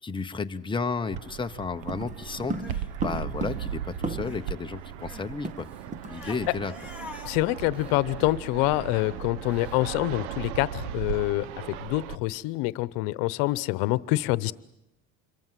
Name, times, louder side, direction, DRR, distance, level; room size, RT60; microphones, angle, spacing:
voice 1, 0.0-5.7 6.1-6.7, left 4 dB, 15° left, 7 dB, 1.1 m, -33 dB
Fixed-wing aircraft airplane, 1.1-12.2, right 10 dB, 85° right, 1.1 m, -37 dB
sound 1, 1.9-4.5 4.8-4.9 5.1-6.2 6.4-6.6 7.0-7.2, right 2 dB, 20° right, 1.4 m, -35 dB
Crying sobbing, 2.3-4.5 4.8-9.8, left 3 dB, 5° right, 3.3 m, -47 dB
voice 2, 7.2-14.5, left 19 dB, 80° left, 19 dB, 1.0 m, -26 dB
26.5 x 23.0 x 7.6 m, 0.85 s
cardioid pair, 125°, 34 cm